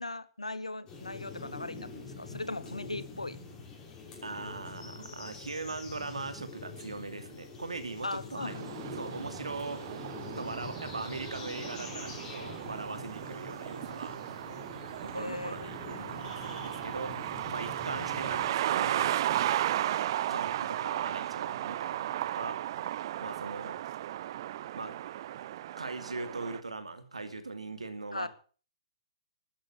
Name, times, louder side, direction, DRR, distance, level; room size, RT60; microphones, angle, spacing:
voice 1, 0.0-3.4 8.0-8.6 15.1-16.1 28.1-28.3, left 2 dB, 85° left, 16 dB, 1.2 m, -39 dB
sound 1, 0.9-18.5, left 4 dB, 20° left, 5.6 m, -45 dB
voice 2, 4.2-8.6 8.9-9.8 10.4-14.2 15.0-17.2 17.5-19.2 20.3-22.6 23.2-23.8 24.7-25.0 25.8-28.3, right 3 dB, 80° right, 10 dB, 2.6 m, -40 dB
sound 2, 8.5-26.6, right 12 dB, 45° right, 0.7 m, -35 dB
13.0 x 10.5 x 7.3 m, 0.40 s
figure-of-eight pair, 125°, 3 cm